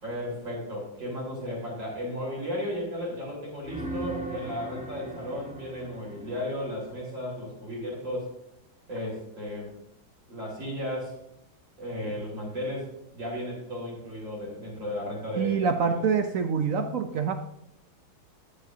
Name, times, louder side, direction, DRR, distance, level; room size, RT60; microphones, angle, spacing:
voice 1, 0.0-8.3 8.9-9.7 10.3-11.2 11.8-16.0, left 1 dB, 60° right, -4 dB, 5.1 m, -34 dB
sound 1, 3.6-7.5 12.0-12.1, right 2 dB, 5° right, 0.9 m, -39 dB
voice 2, 15.4-17.3, right 6 dB, 75° right, 7 dB, 0.7 m, -26 dB
14.0 x 9.8 x 2.8 m, 0.80 s
omnidirectional pair, 2.2 m